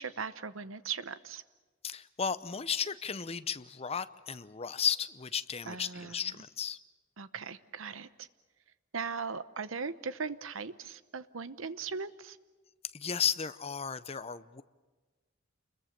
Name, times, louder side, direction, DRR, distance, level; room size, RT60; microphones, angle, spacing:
voice 1, 0.0-1.4 5.7-6.3 7.2-8.3 8.9-12.4, right 5 dB, 85° right, 14 dB, 0.9 m, -39 dB
voice 2, 1.8-6.8 12.9-14.6, left 7 dB, 30° left, 13 dB, 0.7 m, -34 dB
28.5 x 22.0 x 6.7 m, 1.3 s
head